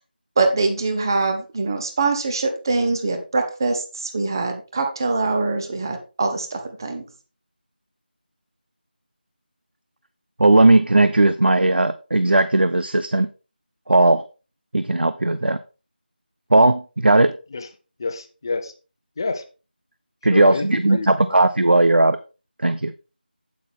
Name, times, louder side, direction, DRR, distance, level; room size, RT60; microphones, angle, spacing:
voice 1, 0.4-7.0, right 3 dB, 25° right, 5 dB, 1.2 m, -23 dB
voice 2, 10.4-13.3 13.9-14.2 14.7-15.6 16.5-17.3 20.2-22.2 22.6-22.9, right 2 dB, 75° right, 12 dB, 0.7 m, -17 dB
voice 3, 18.0-18.7 19.2-19.4 20.3-21.3, left 3 dB, 25° left, 8 dB, 0.8 m, -28 dB
8.6 x 8.3 x 3.6 m, 0.32 s
figure-of-eight pair, 170°, 5 cm